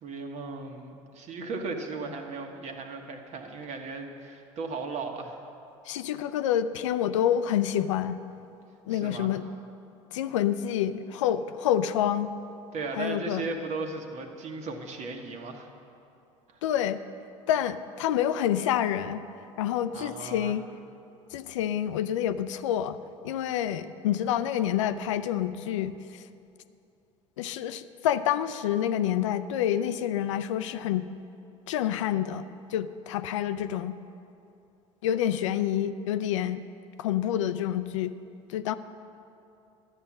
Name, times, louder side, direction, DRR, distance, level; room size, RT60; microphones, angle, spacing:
voice 1, 0.0-5.4 8.9-9.4 12.7-15.7 16.5-16.6 19.9-20.6, right 3 dB, 45° right, 3 dB, 1.5 m, -36 dB
voice 2, 5.8-8.2 8.9-9.5 10.1-12.3 12.9-13.4 16.6-17.0 17.5-19.2 19.6-20.6 21.3-23.0 23.2-26.3 27.4-31.1 31.7-34.0 35.0-36.6 37.0-38.2 38.5-38.7, left 10 dB, 75° left, 12 dB, 0.5 m, -28 dB
12.0 x 9.0 x 6.2 m, 2.7 s
hypercardioid pair, 75°, 16 cm